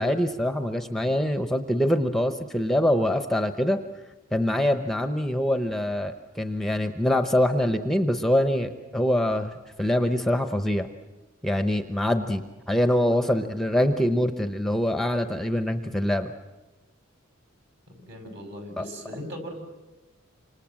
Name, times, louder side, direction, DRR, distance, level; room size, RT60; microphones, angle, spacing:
voice 1, 0.0-3.8 4.3-10.9 11.4-16.3 18.8-18.9, left 1 dB, ahead, 7 dB, 0.9 m, -24 dB
voice 2, 17.9-19.6, equal, 55° right, 5 dB, 6.5 m, -39 dB
29.0 x 26.5 x 7.6 m, 1.1 s
head